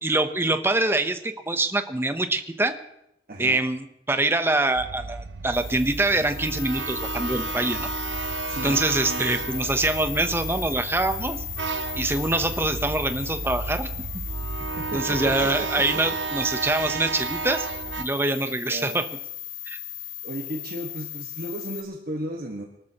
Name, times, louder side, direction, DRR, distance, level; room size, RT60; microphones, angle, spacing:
voice 1, 0.0-2.8 3.4-7.9 8.6-11.4 12.0-13.9 14.9-17.7 18.0-19.1 19.7-19.8, right 2 dB, 15° right, 8 dB, 0.8 m, -24 dB
voice 2, 3.3-3.6 8.5-8.8 9.0-9.6 14.8-16.0 18.7-19.0 20.2-22.6, right 1 dB, 55° right, 0 dB, 1.5 m, -35 dB
sound 1, 4.8-18.0, right 4 dB, 75° right, 0.6 m, -32 dB
sound 2, 5.5-21.8, left 12 dB, 85° left, 1.7 m, -37 dB
24.0 x 13.0 x 2.9 m, 0.81 s
head